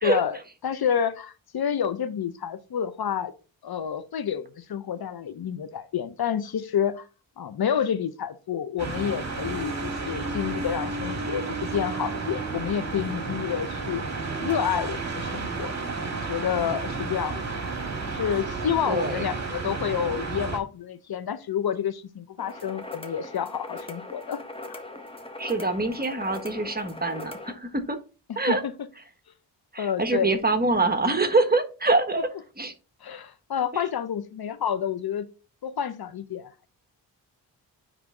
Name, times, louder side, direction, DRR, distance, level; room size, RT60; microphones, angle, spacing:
voice 1, 0.0-3.3 3.6-7.0 7.4-14.0 14.4-15.8 16.2-17.4 18.1-24.8 28.3-28.7 29.8-30.4 33.0-35.3 35.6-36.7, left 8 dB, 55° left, 0.8 m, -29 dB
sound 1, 8.8-20.6, right 3 dB, 35° right, 2.0 m, -32 dB
voice 2, 18.9-19.2 25.4-28.0 28.4-28.6 29.7-32.3 32.6-32.7 33.7-33.8, right 3 dB, 20° right, 1.4 m, -25 dB
sound 2, 22.4-27.5, left 2 dB, 10° left, 1.4 m, -40 dB
9.6 x 3.3 x 3.7 m
cardioid pair, 55°, 44 cm